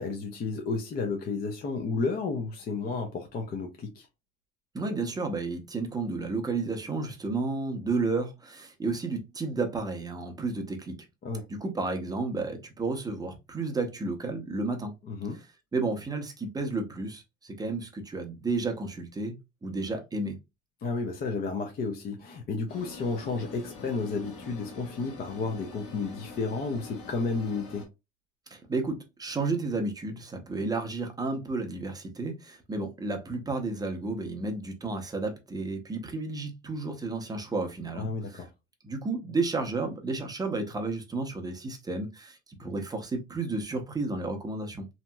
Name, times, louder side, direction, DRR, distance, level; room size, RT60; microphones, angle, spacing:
voice 1, 0.0-4.1 11.2-11.4 15.0-15.4 20.8-27.9 38.0-38.5, left 4 dB, 30° left, 0.5 m, -32 dB
voice 2, 4.7-11.0 11.5-14.9 15.7-19.4 19.6-20.4 28.5-38.4 38.8-44.9, right 3 dB, 15° right, 0.6 m, -32 dB
sound 1, 22.7-27.9, left 4 dB, 50° left, 1.2 m, -45 dB
2.9 x 2.8 x 2.2 m
cardioid pair, 135°, 29 cm